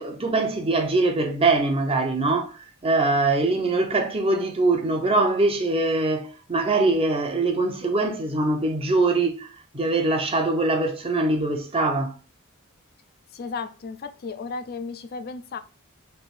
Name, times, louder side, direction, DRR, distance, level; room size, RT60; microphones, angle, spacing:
voice 1, 0.0-9.5 9.7-12.1, right 2 dB, 25° right, 0.7 m, -23 dB
voice 2, 13.3-15.6, left 4 dB, 45° left, 0.4 m, -34 dB
3.4 x 2.7 x 4.2 m
head